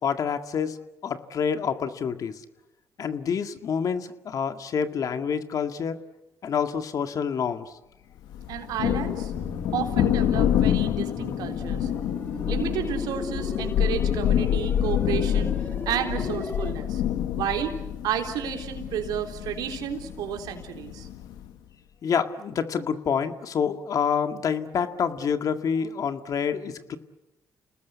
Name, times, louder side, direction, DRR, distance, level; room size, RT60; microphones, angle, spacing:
voice 1, 0.0-0.8 1.0-2.4 3.0-6.0 6.4-7.7 22.0-27.0, left 7 dB, 60° left, 8 dB, 1.9 m, -27 dB
Thunder, 8.3-21.5, left 10 dB, 85° left, 1.4 m, -27 dB
voice 2, 8.5-9.3 9.7-11.9 12.5-15.5 15.9-17.0 17.3-21.1, right 9 dB, 80° right, 4 dB, 3.8 m, -31 dB
sound 1, 9.3-16.7, left 2 dB, 30° left, 3.7 m, -37 dB
29.5 x 19.5 x 8.3 m, 0.95 s
supercardioid pair, 70°, 7 cm